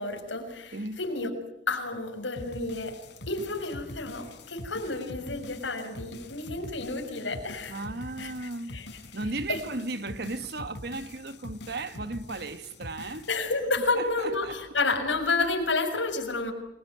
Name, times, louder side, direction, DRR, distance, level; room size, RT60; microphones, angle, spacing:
voice 1, 0.0-1.3 1.7-3.0 3.3-7.8 8.2-9.2 9.5-9.6 13.3-16.5, left 3 dB, 80° left, 6.5 m, -30 dB
voice 2, 0.7-1.3 7.7-8.7 9.1-13.3 13.9-14.5, right 2 dB, 55° right, 1.4 m, -35 dB
sound 1, 2.4-13.3, left 1 dB, 65° left, 5.2 m, -44 dB
28.5 x 22.0 x 9.5 m
head